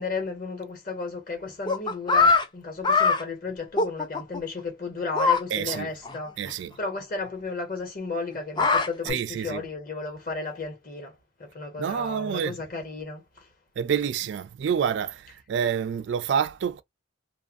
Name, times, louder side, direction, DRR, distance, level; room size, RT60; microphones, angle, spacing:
voice 1, 0.0-13.5, left 3 dB, 45° left, 1.2 m, -34 dB
sound 1, 1.7-2.4 2.8-3.2 3.8-4.4 5.2-5.4 5.7-5.8 6.1-6.2 6.5-6.6 8.3-9.1, left 4 dB, 20° left, 0.3 m, -21 dB
voice 2, 5.5-5.9 6.4-6.8 9.1-9.6 11.8-12.6 13.8-16.8, right 7 dB, 60° right, 0.3 m, -28 dB
2.5 x 2.4 x 2.4 m
head